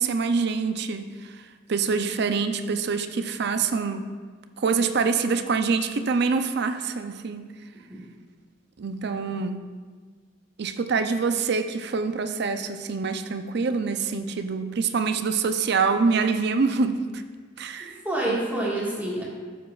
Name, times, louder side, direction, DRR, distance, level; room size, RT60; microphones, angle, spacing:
voice 1, 0.0-4.1 4.6-7.5 8.8-9.7 10.6-17.2 17.6-18.0 18.3-18.4, right 4 dB, 60° right, 8 dB, 0.5 m, -25 dB
voice 2, 17.8-19.2, right 1 dB, 10° right, -6 dB, 1.7 m, -27 dB
13.0 x 7.2 x 2.4 m, 1.5 s
head